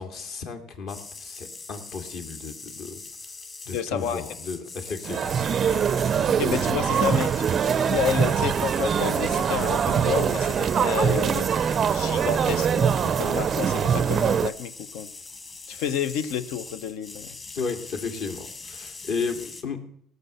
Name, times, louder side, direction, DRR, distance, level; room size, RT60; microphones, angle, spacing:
voice 1, 0.0-3.0 3.7-5.3 5.7-5.9 17.5-19.8, left 5 dB, 55° left, 7 dB, 2.4 m, -34 dB
sound 1, 0.9-19.6, left 3 dB, 25° left, 2.0 m, -42 dB
voice 2, 3.7-4.2 6.3-7.5 7.9-15.1 15.7-17.4, left 8 dB, 75° left, 14 dB, 0.9 m, -30 dB
sound 2, 5.0-14.5, right 7 dB, 35° right, 0.4 m, -23 dB
18.0 x 6.7 x 6.8 m, 0.66 s
cardioid pair, 145°, 0 cm